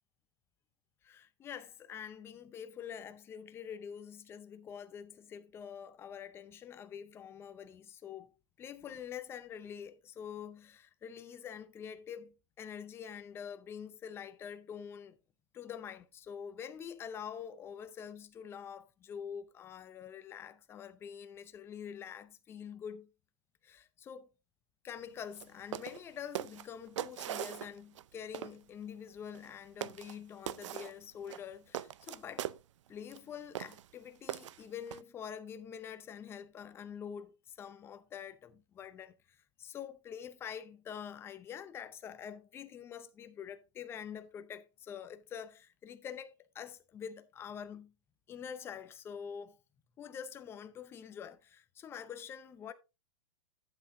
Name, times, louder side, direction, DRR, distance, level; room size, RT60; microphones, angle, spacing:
voice 1, 1.0-8.3 8.6-15.2 15.5-23.1 23.6-24.3 24.8-32.5 32.9-47.9 48.3-49.6 50.0-52.7, left 8 dB, 15° left, 0.6 m, -46 dB
sound 1, 25.3-25.5 25.7-26.0 26.3-28.0 28.3-28.6 29.3-29.5 29.8-30.2 30.5-30.9 31.3-32.6 33.1-33.2 33.5-33.9 34.3-35.0, right 12 dB, 65° right, 0.5 m, -40 dB
12.0 x 7.8 x 2.7 m
hypercardioid pair, 150°, 17 cm